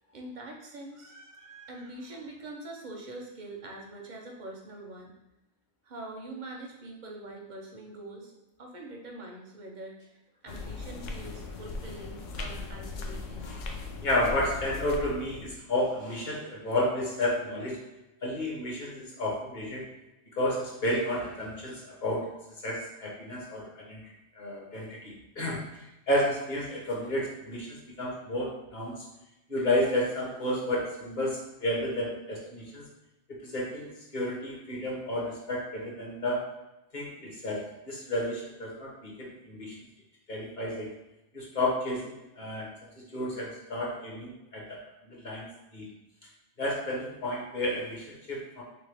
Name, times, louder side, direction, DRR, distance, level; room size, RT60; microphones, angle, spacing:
voice 1, 0.1-5.1 5.8-13.5, right 2 dB, 50° right, 0 dB, 0.6 m, -44 dB
sound 1, 10.5-15.6, left 3 dB, 75° left, 0.9 m, -38 dB
voice 2, 14.0-17.9 18.2-19.9 20.3-22.3 22.6-29.1 29.5-32.8 33.4-36.5 36.9-39.7 40.3-40.9 41.3-42.7 43.1-45.9 46.6-48.6, left 1 dB, 40° left, -3 dB, 1.1 m, -32 dB
3.4 x 3.4 x 3.3 m, 0.96 s
omnidirectional pair, 1.3 m